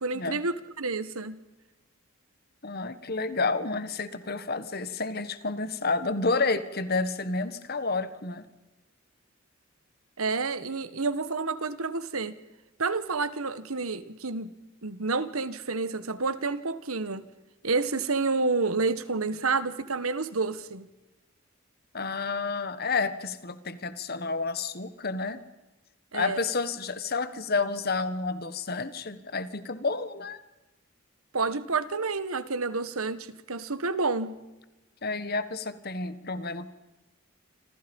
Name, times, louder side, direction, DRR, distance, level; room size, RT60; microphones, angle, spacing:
voice 1, 0.0-1.4 10.2-12.4 12.8-14.5 14.8-17.2 17.6-20.9 26.1-26.4 31.3-34.4, right 4 dB, 90° right, 13 dB, 1.7 m, -29 dB
voice 2, 2.6-8.4 21.9-25.4 26.1-30.4 35.0-36.7, left 3 dB, 45° left, 12 dB, 1.6 m, -30 dB
28.5 x 26.5 x 5.5 m, 1.0 s
head